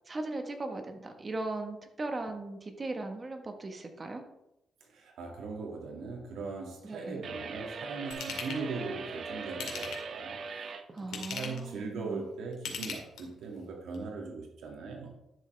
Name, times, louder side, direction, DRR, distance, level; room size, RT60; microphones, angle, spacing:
voice 1, 0.1-4.2 6.8-7.2 10.9-12.3, right 2 dB, 25° right, 1.4 m, -38 dB
voice 2, 4.9-10.4 11.0-15.1, right 4 dB, 80° right, 2.3 m, -39 dB
sound 1, 7.2-10.9, right 4 dB, 55° right, 0.8 m, -40 dB
Ratchet pawl / Tools, 8.1-8.6 9.5-10.2 11.0-11.7 12.5-13.4 13.9-14.0, left 6 dB, 85° left, 2.3 m, -39 dB
12.0 x 7.2 x 3.4 m
cardioid pair, 120°, 0 cm